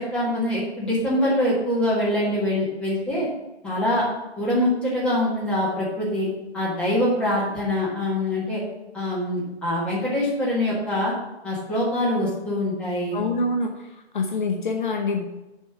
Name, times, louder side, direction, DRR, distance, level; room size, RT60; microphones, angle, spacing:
voice 1, 0.0-3.3 3.6-4.1 4.4-6.3 6.5-8.6 8.9-11.1 11.4-13.2, left 1 dB, 5° left, -8 dB, 1.6 m, -24 dB
voice 2, 13.1-15.3, left 3 dB, 45° left, 3 dB, 0.9 m, -26 dB
7.1 x 5.6 x 5.9 m, 0.99 s
hypercardioid pair, 160°, 33 cm